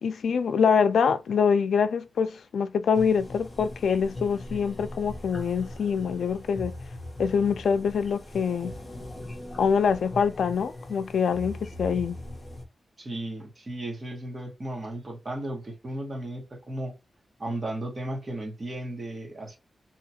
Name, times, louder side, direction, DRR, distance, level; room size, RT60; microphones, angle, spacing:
voice 1, 0.0-6.7 7.2-8.7 9.6-12.2, left 6 dB, 85° left, 0.3 m, -25 dB
sound 1, 2.9-12.7, left 1 dB, 25° left, 0.7 m, -40 dB
voice 2, 13.0-16.9 17.4-19.6, right 1 dB, 30° right, 1.1 m, -35 dB
2.9 x 2.4 x 2.8 m
wide cardioid pair, 155°, 0 cm